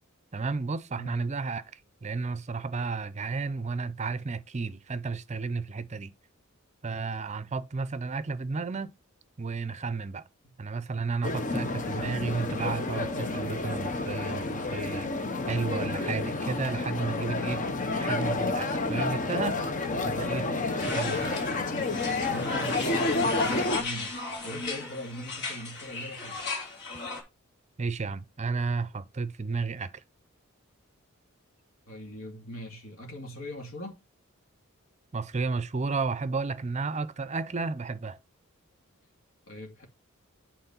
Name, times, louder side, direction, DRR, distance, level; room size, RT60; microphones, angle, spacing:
voice 1, 0.3-1.6 2.0-6.1 6.8-8.9 9.4-10.2 10.6-15.1 15.5-17.6 18.0-19.6 20.1-20.5 20.9-21.4 27.8-29.9 35.1-38.2, right 4 dB, 35° right, 0.6 m, -32 dB
voice 2, 1.0-1.3 22.2-24.1 24.4-26.5 31.9-34.0 39.5-39.9, equal, 70° left, 2.6 m, -41 dB
sound 1, 11.2-23.8, left 3 dB, 35° left, 0.9 m, -30 dB
sound 2, 20.8-27.2, left 3 dB, 55° left, 3.3 m, -35 dB
8.4 x 4.3 x 5.6 m
head